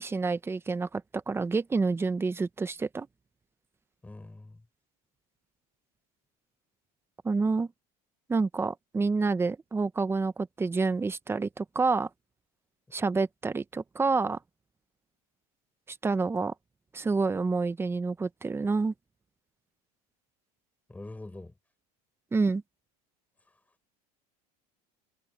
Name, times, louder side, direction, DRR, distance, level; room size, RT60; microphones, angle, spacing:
voice 1, 0.0-3.1 7.2-7.7 8.3-12.1 12.9-14.4 15.9-16.5 16.9-18.9 22.3-22.6, right 4 dB, 10° right, 0.8 m, -28 dB
voice 2, 4.0-4.7 20.9-21.6, left 2 dB, 5° left, 6.8 m, -44 dB
supercardioid pair, 135°, 20 cm